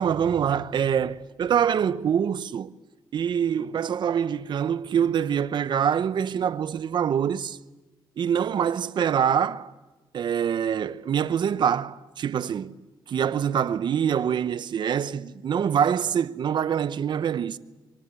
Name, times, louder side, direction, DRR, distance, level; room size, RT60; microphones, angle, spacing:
voice 1, 0.0-2.7 3.1-7.6 8.2-9.7 10.1-12.8 13.1-17.6, right 8 dB, 55° right, 0.9 m, -25 dB
24.0 x 23.5 x 9.8 m
cardioid pair, 135°, 9 cm